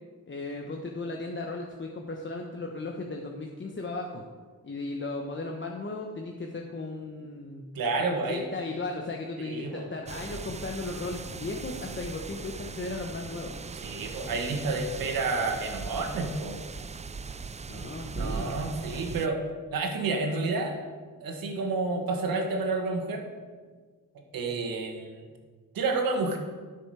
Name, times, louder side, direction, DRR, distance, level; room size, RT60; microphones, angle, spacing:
voice 1, 0.3-4.2 4.6-7.6 8.1-13.6 17.7-18.6, left 3 dB, 35° left, 1 dB, 1.1 m, -36 dB
voice 2, 7.7-8.4 9.4-9.9 13.8-16.6 18.1-19.4 19.7-20.8 21.2-23.3 24.3-25.3 25.7-26.4, right 3 dB, 85° right, 3 dB, 1.6 m, -30 dB
sound 1, 10.1-19.3, right 4 dB, 20° right, 0.4 m, -39 dB
12.0 x 6.1 x 4.8 m, 1.5 s
cardioid pair, 70°, 34 cm